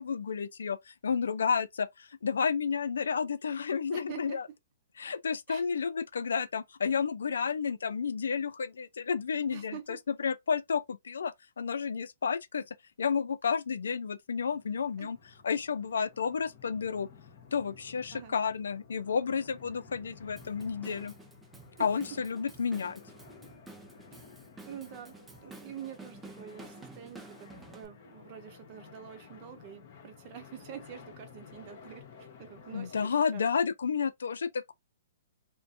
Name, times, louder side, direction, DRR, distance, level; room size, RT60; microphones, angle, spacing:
voice 1, 0.0-4.5 5.0-12.6 13.0-15.2 15.4-17.1 17.5-21.1 21.8-23.0 32.7-34.7, left 6 dB, 85° left, 0.4 m, -31 dB
voice 2, 3.9-4.4 5.5-5.6 9.5-10.0 15.0-15.1 18.1-18.4 21.8-22.0 24.1-24.2 24.6-33.5, right 9 dB, 40° right, 0.8 m, -46 dB
sound 1, 14.5-33.1, left 5 dB, 50° left, 0.9 m, -54 dB
Drum kit / Drum, 20.4-27.9, right 3 dB, 5° right, 0.4 m, -51 dB
2.5 x 2.1 x 2.6 m
hypercardioid pair, 140°, 0 cm